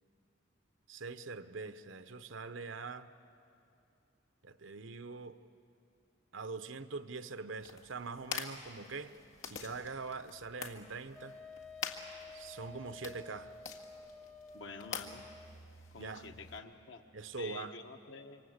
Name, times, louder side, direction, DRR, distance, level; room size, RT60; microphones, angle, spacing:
voice 1, 0.9-3.1 4.4-5.4 6.3-9.1 9.4-11.4 12.3-13.5 16.0-16.3 17.1-17.8, right 4 dB, 70° right, 11 dB, 0.9 m, -43 dB
sound 1, 7.6-16.6, left 7 dB, 85° left, 2.0 m, -47 dB
Wind instrument woodwind instrument, 11.1-15.5, left 3 dB, 5° left, 0.6 m, -51 dB
voice 2, 14.5-15.3 15.9-17.0 17.4-18.4, left 4 dB, 65° left, 5 dB, 1.4 m, -48 dB
27.0 x 24.5 x 8.0 m, 2.6 s
head